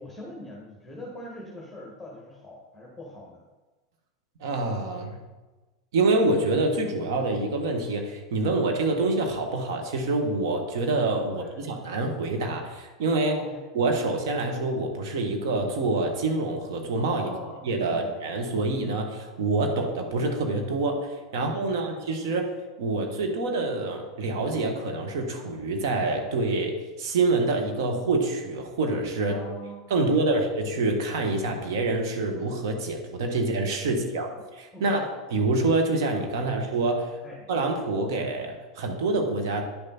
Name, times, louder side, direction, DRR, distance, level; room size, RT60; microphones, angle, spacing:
voice 1, 0.0-3.4 11.3-11.6 13.3-13.6 17.1-18.2 21.3-22.3 29.3-30.5 33.4-33.5 34.3-34.4 34.7-35.0 36.3-36.6 37.2-37.5, left 1 dB, ahead, -4 dB, 1.9 m, -43 dB
voice 2, 4.4-5.2 5.9-13.4 13.7-17.3 17.6-22.5 22.8-29.4 29.9-37.2 37.5-39.6, right 2 dB, 55° right, 3 dB, 1.5 m, -26 dB
10.0 x 6.6 x 4.3 m, 1.2 s
figure-of-eight pair, 85°, 2 cm